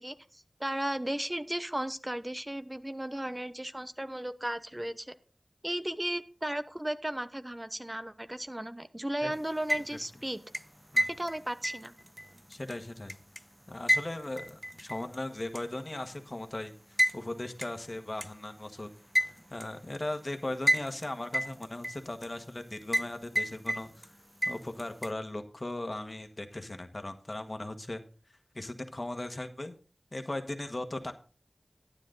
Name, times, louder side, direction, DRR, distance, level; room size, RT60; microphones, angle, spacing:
voice 1, 0.0-5.1 5.6-10.4 11.1-11.9, right 1 dB, 20° right, 12 dB, 0.9 m, -35 dB
sound 1, 9.5-10.1 10.5-13.4 13.9-15.2 15.5-15.6 17.0-17.2 17.6-17.7 18.2-18.3 19.1-19.7 20.7-21.1 21.3-22.3 22.9-23.1 23.4-24.1 24.4-25.1, equal, 5° right, 0.5 m, -30 dB
voice 2, 12.5-13.1 13.7-18.9 19.5-24.1 24.4-28.0 28.5-29.7 30.1-31.1, left 1 dB, 40° left, 6 dB, 1.6 m, -38 dB
12.0 x 9.7 x 3.9 m, 0.38 s
wide cardioid pair, 45°, 0 cm